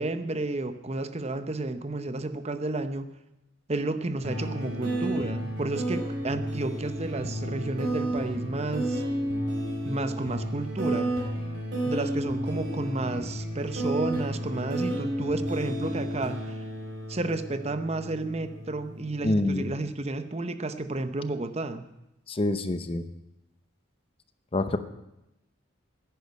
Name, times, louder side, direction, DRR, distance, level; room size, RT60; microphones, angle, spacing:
voice 1, 0.0-3.1 3.7-9.0 9.8-11.1 11.8-16.6 17.1-21.8, right 2 dB, 35° right, 10 dB, 0.8 m, -31 dB
sound 1, 4.2-19.3, right 1 dB, 65° right, 4.6 m, -32 dB
voice 2, 19.2-19.8 22.3-23.0 24.5-24.8, left 2 dB, 30° left, 11 dB, 0.7 m, -26 dB
10.5 x 10.5 x 9.6 m, 0.90 s
head